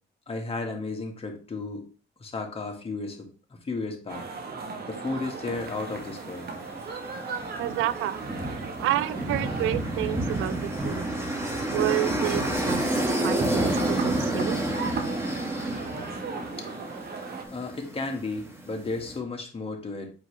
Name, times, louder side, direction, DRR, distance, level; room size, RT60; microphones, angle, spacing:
voice 1, 0.3-1.9 2.2-3.3 3.6-4.3 4.9-6.5 17.5-20.1, left 3 dB, 30° left, 2 dB, 1.8 m, -33 dB
sound 1, 4.1-17.4, right 4 dB, 50° right, 1.3 m, -37 dB
sound 2, 5.6-19.2, right 1 dB, 15° right, 1.8 m, -30 dB
voice 2, 7.6-8.2 8.5-11.1 11.7-12.9 13.2-14.6, right 14 dB, 85° right, 16 dB, 0.4 m, -29 dB
7.9 x 4.7 x 3.3 m, 0.37 s
cardioid pair, 90°, 20 cm